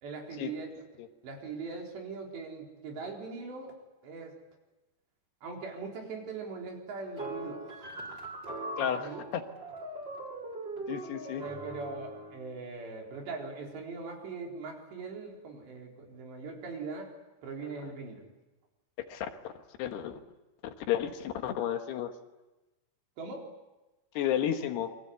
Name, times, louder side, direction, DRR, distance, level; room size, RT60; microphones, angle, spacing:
voice 1, 0.0-0.8 1.2-3.7 4.0-4.4 5.4-8.2 8.9-9.2 11.3-17.1 17.4-18.2 23.2-23.5, right 4 dB, 85° right, 1 dB, 6.3 m, -41 dB
sound 1, 7.2-12.4, right 2 dB, 25° right, 5.0 m, -40 dB
voice 2, 8.8-9.4 10.9-11.4 19.1-19.5 19.8-20.2 20.9-22.1 24.2-25.0, left 10 dB, 75° left, 7 dB, 3.4 m, -32 dB
27.5 x 24.0 x 8.2 m, 1.1 s
omnidirectional pair, 4.9 m